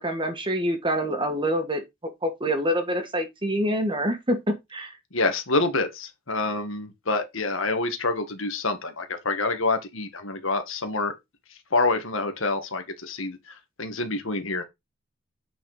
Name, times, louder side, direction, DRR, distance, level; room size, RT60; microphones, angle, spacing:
voice 1, 0.0-1.8 2.2-5.0, equal, 25° right, 1.8 m, -26 dB
voice 2, 5.1-11.1 11.7-14.6, left 3 dB, 65° left, 1.8 m, -27 dB
9.0 x 4.6 x 5.0 m
head